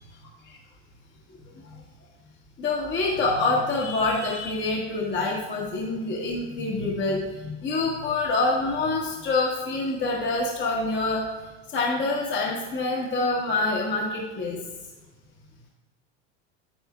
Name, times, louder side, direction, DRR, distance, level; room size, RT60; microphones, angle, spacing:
voice 1, 2.6-11.2 11.7-14.6, left 3 dB, 30° left, -3 dB, 1.5 m, -26 dB
9.0 x 8.9 x 2.3 m, 1.2 s
hypercardioid pair, 95°, 38 cm